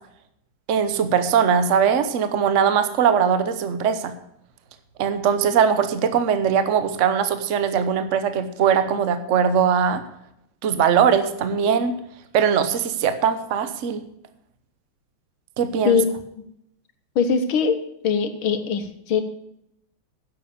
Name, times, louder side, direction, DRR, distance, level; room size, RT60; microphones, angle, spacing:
voice 1, 0.7-4.1 5.0-10.0 10.6-12.0 12.3-14.0 15.6-16.0, right 7 dB, 50° right, 10 dB, 1.0 m, -20 dB
voice 2, 17.2-17.8 18.0-19.2, left 6 dB, 75° left, 8 dB, 2.0 m, -21 dB
11.0 x 7.7 x 6.9 m, 0.76 s
omnidirectional pair, 2.3 m